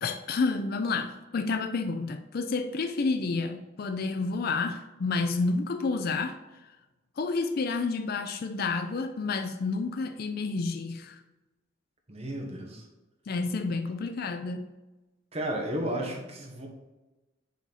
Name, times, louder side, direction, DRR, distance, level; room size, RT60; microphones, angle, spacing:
voice 1, 0.0-6.4 7.2-11.2 13.3-14.7, left 4 dB, 50° left, 7 dB, 0.4 m, -30 dB
voice 2, 12.1-12.8 15.3-16.7, right 1 dB, 30° right, 1 dB, 1.2 m, -33 dB
7.1 x 4.1 x 4.1 m, 1.1 s
head